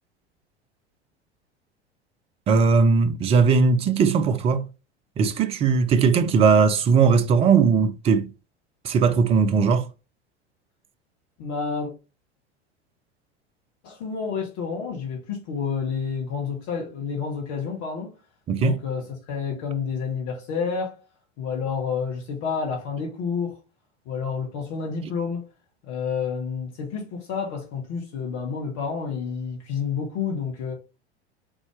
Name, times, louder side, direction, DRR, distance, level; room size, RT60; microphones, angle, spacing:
voice 1, 2.5-4.6 5.2-8.3 8.8-9.9 18.5-18.8, right 5 dB, 20° right, 0.4 m, -19 dB
voice 2, 11.4-11.9 13.8-18.1 18.6-21.0 21.4-23.6 24.0-25.4 25.9-30.7, left 6 dB, 45° left, 1.2 m, -29 dB
4.0 x 3.5 x 3.2 m
figure-of-eight pair, 80°, 34 cm